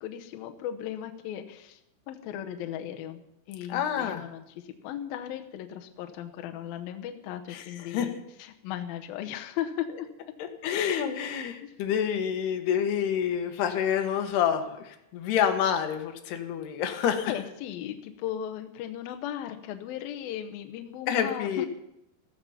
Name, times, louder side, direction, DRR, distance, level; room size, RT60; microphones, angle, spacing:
voice 1, 0.0-1.8 2.1-3.2 3.5-10.1 11.6-11.7 17.2-21.7, left 10 dB, 85° left, 5 dB, 2.1 m, -37 dB
voice 2, 3.7-4.3 7.5-8.1 10.4-17.3 21.1-21.7, left 8 dB, 65° left, 6 dB, 3.0 m, -28 dB
15.5 x 14.5 x 5.7 m, 0.84 s
omnidirectional pair, 5.6 m